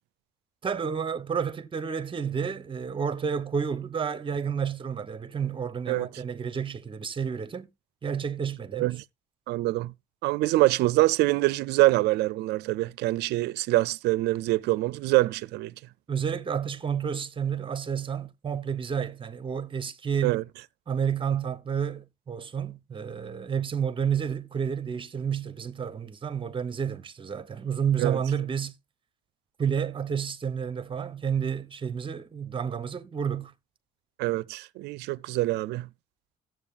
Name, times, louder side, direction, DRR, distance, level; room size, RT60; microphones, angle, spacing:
voice 1, 0.6-7.7 8.0-9.0 16.1-20.4 20.9-28.7 29.6-33.5, right 7 dB, 30° right, 1.0 m, -30 dB
voice 2, 8.7-9.0 9.5-9.9 10.2-15.7 20.2-20.4 28.0-28.2 34.2-35.9, right 18 dB, 80° right, 0.4 m, -25 dB
16.5 x 7.6 x 2.4 m
cardioid pair, 110°, 17 cm